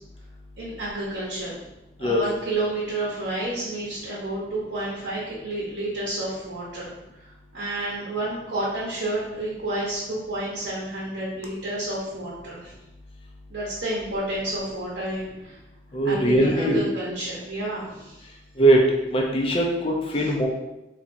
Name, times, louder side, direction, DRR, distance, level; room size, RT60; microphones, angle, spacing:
voice 1, 0.6-1.6 2.0-6.9 7.5-12.7 13.5-15.6 16.0-18.2 20.1-20.3, right 1 dB, 70° right, -6 dB, 0.8 m, -30 dB
voice 2, 15.9-16.8 18.6-18.8 19.1-20.5, right 1 dB, 30° left, 0 dB, 0.5 m, -20 dB
4.2 x 2.3 x 2.6 m, 0.95 s
head